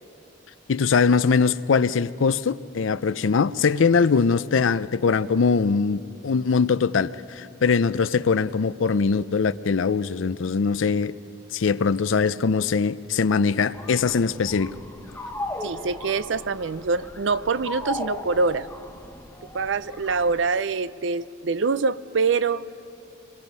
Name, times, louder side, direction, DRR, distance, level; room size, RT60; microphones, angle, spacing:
voice 1, 0.7-11.1 11.5-14.7, left 5 dB, 80° left, 15 dB, 0.5 m, -22 dB
sound 1, 13.7-20.4, left 2 dB, 10° left, 1.3 m, -37 dB
voice 2, 15.6-18.7 19.5-22.6, right 4 dB, 70° right, 15 dB, 0.5 m, -25 dB
26.0 x 23.0 x 5.5 m, 2.7 s
head